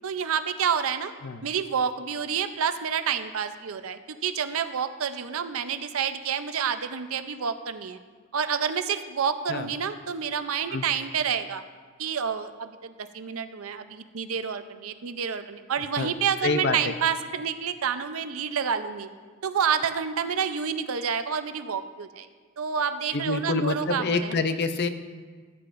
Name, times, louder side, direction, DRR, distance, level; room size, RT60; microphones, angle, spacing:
voice 1, 0.0-1.1 1.4-8.0 8.3-11.6 12.0-19.1 19.4-22.3 22.6-24.4, right 7 dB, 70° right, 10 dB, 0.6 m, -29 dB
voice 2, 16.4-16.9 23.1-24.9, left 3 dB, 50° left, 9 dB, 0.5 m, -27 dB
16.0 x 8.5 x 2.5 m, 1.5 s
head